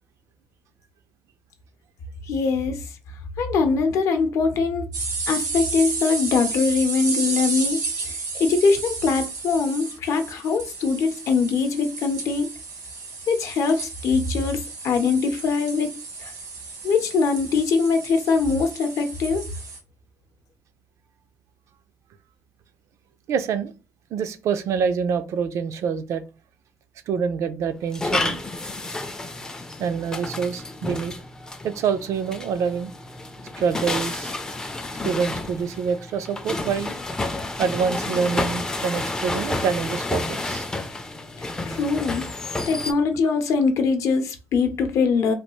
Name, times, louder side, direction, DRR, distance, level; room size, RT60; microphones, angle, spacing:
voice 1, 2.2-2.8 3.4-4.9 5.3-12.5 13.3-15.9 16.2-16.3 16.8-19.5 41.4-42.2 42.7-45.3, left 4 dB, 60° left, 0.6 m, -22 dB
sound 1, 4.9-19.8, right 4 dB, 85° right, 1.2 m, -32 dB
voice 2, 23.3-23.7 24.1-26.2 27.1-28.4 29.8-31.1 31.6-32.9 33.6-34.3 35.0-36.9 37.6-40.7, right 6 dB, 60° right, 0.4 m, -26 dB
sound 2, 27.9-42.9, left 2 dB, 10° left, 0.4 m, -30 dB
3.2 x 2.3 x 3.0 m
cardioid pair, 140°, 6 cm